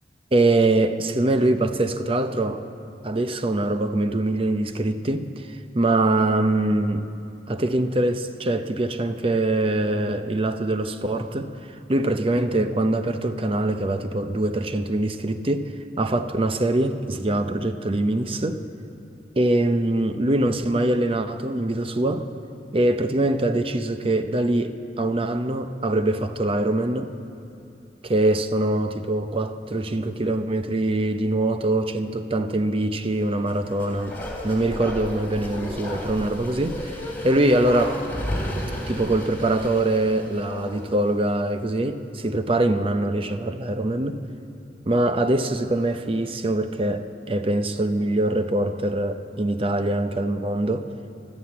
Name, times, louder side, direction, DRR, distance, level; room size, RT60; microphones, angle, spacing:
voice 1, 0.3-2.6 3.0-5.5 5.7-7.1 7.5-18.6 19.4-22.3 22.7-27.1 28.0-37.0 37.2-38.0 38.9-44.2 44.9-50.9, right 1 dB, 30° right, 9 dB, 0.6 m, -23 dB
Bark, 33.4-41.0 41.3-41.4, left 1 dB, 10° left, 3.2 m, -33 dB
13.0 x 12.0 x 8.3 m, 2.7 s
head